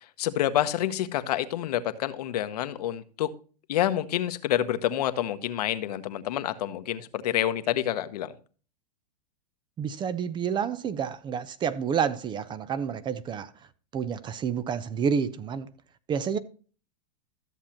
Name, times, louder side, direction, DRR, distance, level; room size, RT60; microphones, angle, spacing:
voice 1, 0.2-3.3 3.7-8.3, left 12 dB, 70° left, 1.0 m, -28 dB
voice 2, 9.8-13.5 13.9-15.7 16.1-16.4, right 7 dB, 20° right, 0.6 m, -29 dB
13.5 x 7.3 x 2.9 m
hypercardioid pair, 125°, 21 cm